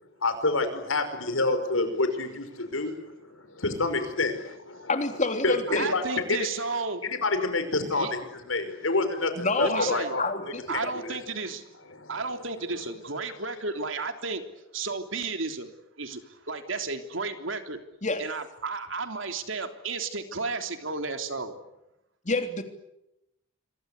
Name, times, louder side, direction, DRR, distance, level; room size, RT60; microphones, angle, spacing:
voice 1, 0.2-4.9 5.4-6.0 6.3-6.4 7.0-8.2 8.5-11.2 11.9-12.2, left 3 dB, 85° left, 8 dB, 5.4 m, -28 dB
voice 2, 4.9-5.8 9.4-10.9 18.0-18.2 22.2-22.6, left 3 dB, 40° left, 6 dB, 3.3 m, -28 dB
voice 3, 5.7-7.0 8.0-8.1 9.6-10.2 10.7-11.6 12.1-14.4 14.7-15.7 16.0-17.8 18.2-21.6, right 4 dB, 70° right, 6 dB, 3.4 m, -33 dB
27.5 x 23.5 x 8.4 m, 0.87 s
head